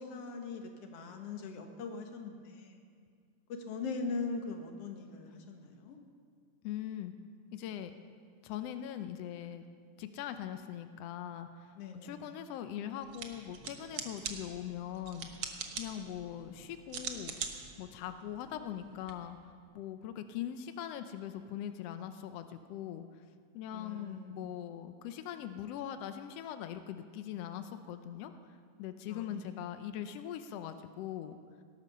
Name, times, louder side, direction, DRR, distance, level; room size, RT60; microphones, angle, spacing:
voice 1, 0.0-2.8 3.5-6.0 11.8-12.2 23.7-24.4 29.1-29.4, left 4 dB, 55° left, 4 dB, 2.1 m, -41 dB
voice 2, 6.6-7.1 7.5-7.9 8.4-9.6 10.0-17.3 17.8-23.2 23.5-31.4, left 10 dB, 85° left, 9 dB, 1.4 m, -41 dB
sound 1, 13.0-19.1, right 6 dB, 60° right, 1.4 m, -44 dB
18.0 x 11.5 x 6.8 m, 2.2 s
omnidirectional pair, 3.6 m